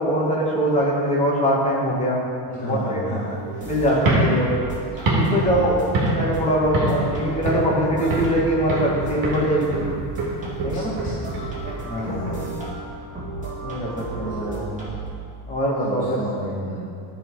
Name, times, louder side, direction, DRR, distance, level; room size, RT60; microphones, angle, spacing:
voice 1, 0.0-2.2 2.6-3.0 3.7-4.5 5.1-5.7 6.1-9.8 10.6-10.9 11.9-12.3 13.6-14.6 15.5-16.2, equal, 15° left, -4 dB, 1.7 m, -22 dB
voice 2, 2.5-3.4 5.3-5.8 10.7-11.1 12.0-12.5 14.4-14.6 15.8-16.9, equal, 30° left, -10 dB, 2.1 m, -31 dB
sound 1, 3.3-15.1, right 2 dB, 20° right, 2.1 m, -33 dB
sound 2, 3.9-6.4 6.7-7.1 7.4-8.4 8.7-9.0 9.2-12.3, right 2 dB, 55° right, 2.0 m, -25 dB
13.0 x 4.3 x 4.7 m, 2.3 s
cardioid pair, 160°, 42 cm